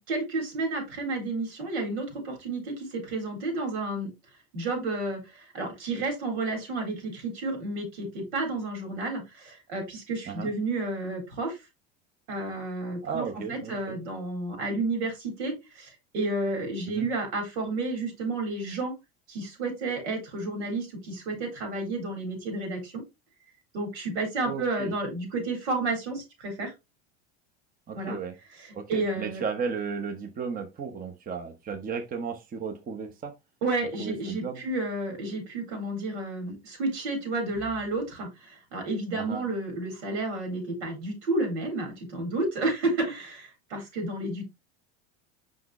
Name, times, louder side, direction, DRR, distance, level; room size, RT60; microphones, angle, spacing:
voice 1, 0.0-4.1 4.5-11.6 12.3-19.0 19.3-23.0 23.7-26.7 27.9-28.2 28.5-29.4 33.6-44.4, right 2 dB, 85° right, 4.0 m, -31 dB
voice 2, 13.0-14.0 16.9-17.1 24.4-24.9 27.9-28.3 28.7-33.3 34.0-34.6 39.1-39.5, right 6 dB, 25° right, 0.9 m, -34 dB
5.8 x 5.4 x 3.1 m
supercardioid pair, 115°, 33 cm